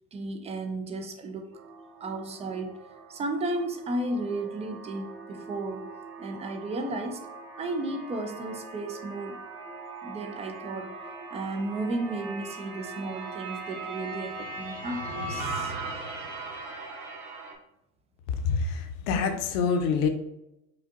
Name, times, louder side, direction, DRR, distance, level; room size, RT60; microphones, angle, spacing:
voice 1, 0.1-1.6 2.0-5.9 6.2-7.3 7.6-9.4 10.0-11.0 11.3-15.8, right 2 dB, 15° right, 5 dB, 0.3 m, -34 dB
sound 1, 1.5-17.5, right 3 dB, 90° right, 1.0 m, -40 dB
voice 2, 18.4-20.1, left 5 dB, 60° left, 5 dB, 0.8 m, -26 dB
5.1 x 2.5 x 2.5 m, 0.88 s
hypercardioid pair, 85°, 42 cm